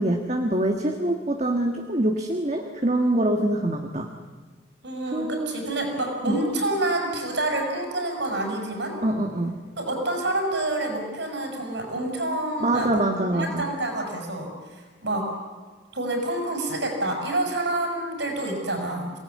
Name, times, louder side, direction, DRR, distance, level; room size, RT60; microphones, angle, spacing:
voice 1, 0.0-4.1 5.1-5.5 6.2-6.4 9.0-9.6 12.6-13.7, right 1 dB, 35° right, 3 dB, 1.7 m, -24 dB
voice 2, 4.8-9.0 9.8-13.0 13.3-15.3 15.9-19.2, right 1 dB, 65° right, 3 dB, 6.8 m, -28 dB
27.5 x 19.0 x 9.6 m, 1.4 s
head